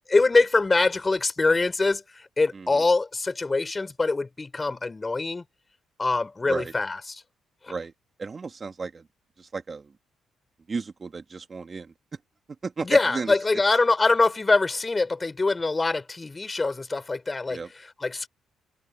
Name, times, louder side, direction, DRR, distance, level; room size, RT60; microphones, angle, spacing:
voice 1, 0.1-5.4 6.0-7.2 7.6-7.7 12.8-18.3, left 3 dB, 25° left, 4.9 m, -24 dB
voice 2, 2.5-2.8 6.4-6.7 7.7-7.9 8.2-9.1 9.4-9.9 10.7-11.9 12.6-13.3 17.5-17.7, right 4 dB, 35° right, 2.4 m, -34 dB
cardioid pair, 90°, 0 cm